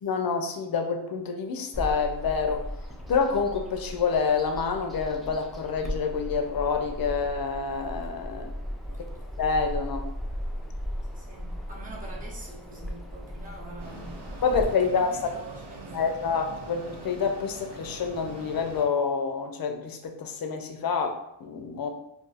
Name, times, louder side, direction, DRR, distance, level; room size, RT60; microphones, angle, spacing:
voice 1, 0.0-2.6 3.1-8.5 9.4-10.1 14.4-15.2 15.9-21.9, left 5 dB, 50° left, 4 dB, 0.5 m, -27 dB
Bird vocalization bird call bird song, 1.7-14.6, equal, ahead, 0.4 m, -37 dB
voice 2, 8.8-9.3 11.1-16.2, right 2 dB, 15° right, -3 dB, 0.8 m, -46 dB
Mechanisms, 13.8-18.9, right 3 dB, 55° right, 0.6 m, -43 dB
2.4 x 2.3 x 3.9 m, 0.83 s
wide cardioid pair, 75°, 48 cm